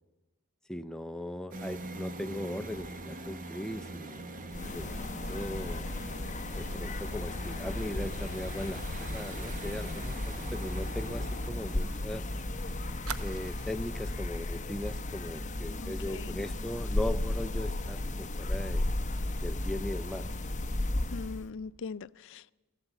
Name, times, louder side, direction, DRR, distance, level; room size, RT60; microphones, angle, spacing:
voice 1, 0.7-4.3 4.7-5.0 5.3-5.8 6.6-12.3 13.2-18.9 19.4-20.3, left 1 dB, 5° left, 0.4 m, -38 dB
sound 1, 1.5-17.0, right 2 dB, 40° right, 1.0 m, -45 dB
High Altitude Ambience (mixed sample), 4.5-21.5, left 1 dB, 35° left, 0.9 m, -34 dB
Fire, 10.2-12.2 12.4-12.5 13.0-14.0 14.4-14.6 14.9-15.2, right 7 dB, 75° right, 0.9 m, -47 dB
voice 2, 15.8-16.3 21.1-22.5, left 5 dB, 60° left, 0.4 m, -41 dB
15.0 x 11.5 x 8.1 m
head